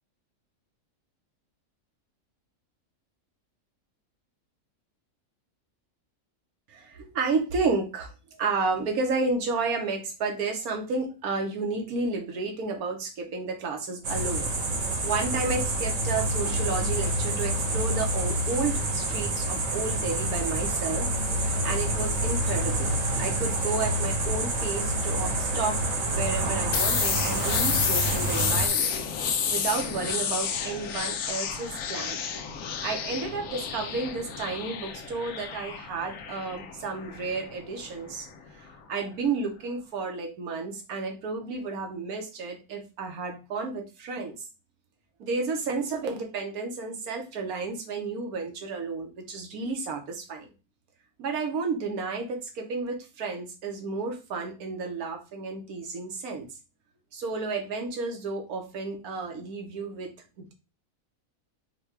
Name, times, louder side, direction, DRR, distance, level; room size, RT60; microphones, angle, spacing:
voice 1, 6.7-14.5 15.0-29.0 29.3-32.2 32.8-38.3 38.5-44.4 45.2-50.5 51.2-56.5 57.1-60.1 60.4-60.5, right 4 dB, 85° right, 3 dB, 1.4 m, -32 dB
sound 1, 14.0-28.7, right 1 dB, 65° right, 1.3 m, -27 dB
sound 2, 26.7-38.4, left 7 dB, 70° left, 1.0 m, -31 dB
4.6 x 2.3 x 4.5 m, 0.29 s
omnidirectional pair, 1.5 m